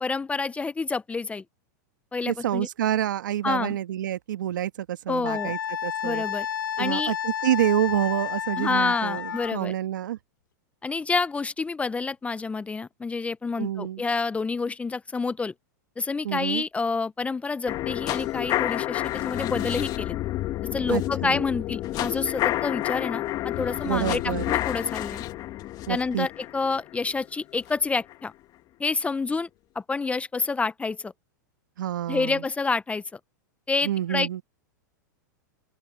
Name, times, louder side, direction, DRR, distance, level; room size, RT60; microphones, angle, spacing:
voice 1, 0.0-1.4 2.1-2.7 3.4-3.8 5.1-5.5 6.0-6.5 6.8-7.1 8.6-9.7 10.8-15.5 16.0-20.2 20.7-25.2 25.9-28.3 28.8-29.5 29.7-31.1 32.1-33.2 33.7-34.4, left 4 dB, 10° left, 0.9 m, -28 dB
voice 2, 2.2-6.2 6.8-10.2 13.6-14.0 16.2-16.6 20.9-21.4 23.8-24.5 25.9-26.3 31.8-32.4 33.8-34.4, right 12 dB, 80° right, 1.5 m, -28 dB
Wind instrument woodwind instrument, 5.3-9.6, left 9 dB, 85° left, 1.3 m, -31 dB
sound 1, 17.7-27.7 28.1-28.2, left 15 dB, 40° left, 2.1 m, -29 dB
open air
hypercardioid pair, 115°, 10 cm